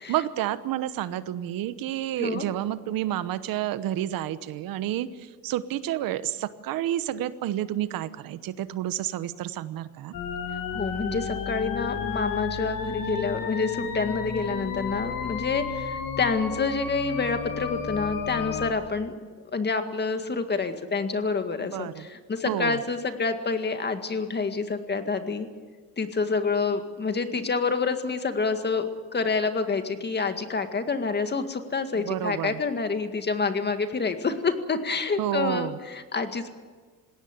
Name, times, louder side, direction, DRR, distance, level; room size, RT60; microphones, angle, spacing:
voice 1, 0.1-10.1 21.6-22.1 22.4-22.8 32.0-32.6 35.2-35.8, right 12 dB, 85° right, 14 dB, 1.1 m, -30 dB
sound 1, 10.1-18.7, left 6 dB, 75° left, 2.8 m, -32 dB
voice 2, 10.7-19.2 19.5-25.5 26.0-36.5, left 4 dB, 30° left, 8 dB, 2.0 m, -28 dB
20.5 x 17.5 x 9.7 m, 1.5 s
cardioid pair, 110°, 34 cm